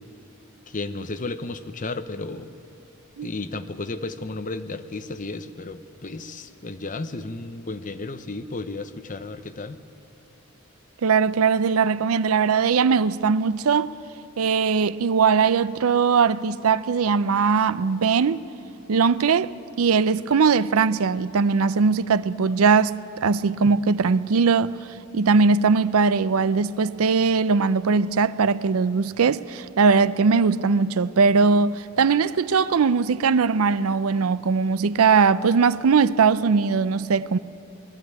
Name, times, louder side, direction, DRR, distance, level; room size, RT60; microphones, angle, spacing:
voice 1, 0.7-2.5 3.2-9.8, left 3 dB, 40° left, 0.8 m, -33 dB
voice 2, 11.0-13.9 14.4-18.4 18.9-24.8 25.1-37.4, right 5 dB, 90° right, 0.5 m, -20 dB
20.5 x 14.0 x 9.5 m
head